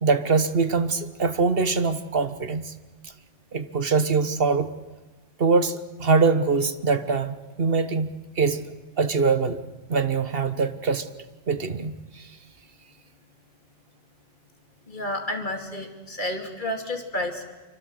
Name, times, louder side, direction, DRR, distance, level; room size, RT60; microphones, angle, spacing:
voice 1, 0.0-2.7 3.5-4.7 5.4-8.1 8.4-8.6 9.0-9.6 9.9-11.1 11.5-12.3, right 4 dB, 50° right, 11 dB, 1.5 m, -23 dB
voice 2, 14.9-17.4, left 1 dB, 40° left, 4 dB, 2.9 m, -30 dB
26.0 x 24.5 x 7.9 m, 1.2 s
omnidirectional pair, 1.2 m